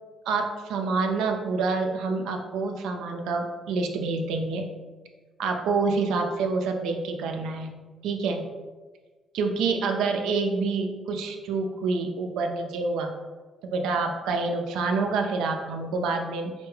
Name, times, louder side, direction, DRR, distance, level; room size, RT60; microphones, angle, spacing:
voice 1, 0.3-4.7 5.4-7.7 8.0-8.4 9.3-13.1 13.6-16.5, right 4 dB, 90° right, 3 dB, 0.4 m, -27 dB
3.4 x 2.1 x 3.1 m, 1.3 s
cardioid pair, 90°, 0 cm